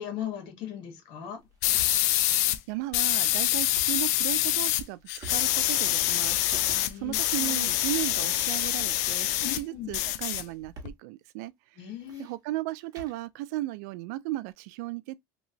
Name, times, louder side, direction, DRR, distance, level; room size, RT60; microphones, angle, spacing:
voice 1, 0.0-1.4 6.7-7.7 9.4-10.0 11.8-12.2, left 10 dB, 70° left, 1.3 m, -38 dB
sound 1, 1.4-2.2 3.6-4.1 4.6-5.8 6.1-7.4 8.1-8.7 8.9-10.0 10.8-11.0 11.2-11.3 11.8-13.3, right 4 dB, 45° right, 1.3 m, -48 dB
sound 2, 1.6-2.6 2.9-4.8 5.1-9.6 9.9-10.9, left 14 dB, 90° left, 0.4 m, -26 dB
voice 2, 2.7-6.4 7.0-11.5 12.2-15.2, right 17 dB, 85° right, 0.4 m, -35 dB
3.0 x 2.7 x 2.7 m
supercardioid pair, 110°, 9 cm